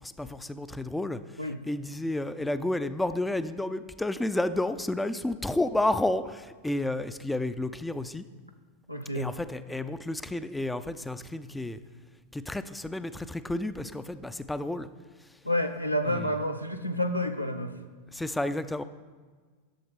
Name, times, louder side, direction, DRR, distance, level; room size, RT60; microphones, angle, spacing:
voice 1, 0.0-1.2 1.7-8.2 9.1-11.8 12.3-14.9 16.1-16.3 18.1-18.8, left 1 dB, 5° left, 12 dB, 0.3 m, -31 dB
voice 2, 8.9-9.3 15.4-17.7, left 1 dB, 90° left, 6 dB, 0.6 m, -29 dB
11.0 x 6.9 x 3.5 m, 1.5 s
figure-of-eight pair, 90°, 0 cm